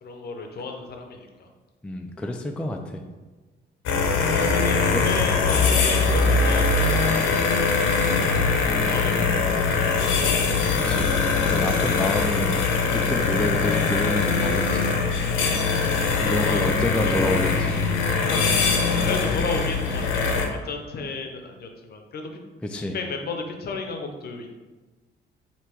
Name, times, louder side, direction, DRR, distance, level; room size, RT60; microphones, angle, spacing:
voice 1, 0.0-1.5 4.3-7.9 8.8-9.7 16.2-17.4 18.0-18.5 18.9-22.3 22.9-24.5, left 4 dB, 50° left, 4 dB, 0.7 m, -33 dB
voice 2, 1.8-3.0 4.9-5.1 10.8-11.1 11.5-12.6 12.9-14.9 16.2-17.8 22.6-23.0, left 1 dB, 5° left, 3 dB, 0.3 m, -28 dB
sound 1, 3.8-20.5, left 4 dB, 85° left, 0.7 m, -22 dB
3.4 x 2.9 x 4.5 m, 1.2 s
cardioid pair, 90°, 20 cm